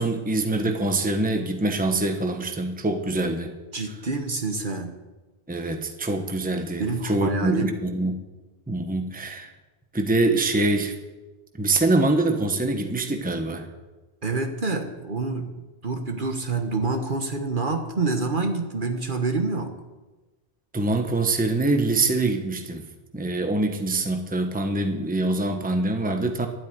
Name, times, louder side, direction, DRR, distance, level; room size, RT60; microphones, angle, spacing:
voice 1, 0.0-3.5 5.5-8.2 8.7-9.5 9.9-11.0 11.6-13.7 20.7-22.8 23.1-26.5, right 2 dB, 10° right, 5 dB, 1.1 m, -24 dB
voice 2, 3.7-5.0 6.8-7.7 14.2-15.5 15.8-19.7, right 3 dB, 50° right, 5 dB, 1.4 m, -27 dB
12.5 x 8.6 x 9.5 m, 1.2 s
omnidirectional pair, 1.1 m